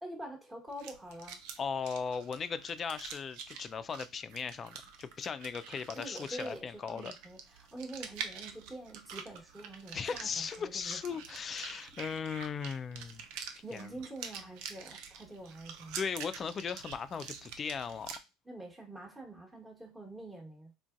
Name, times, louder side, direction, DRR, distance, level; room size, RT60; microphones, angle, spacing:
voice 1, 0.0-1.4 5.9-11.2 13.6-16.0 18.4-20.7, right 1 dB, 15° right, 1.1 m, -46 dB
sound 1, 0.7-18.2, right 7 dB, 65° right, 0.5 m, -47 dB
voice 2, 1.6-7.1 9.9-13.2 13.7-13.9 15.9-18.1, left 6 dB, 35° left, 0.3 m, -37 dB
3.6 x 2.5 x 2.4 m
hypercardioid pair, 70°, 0 cm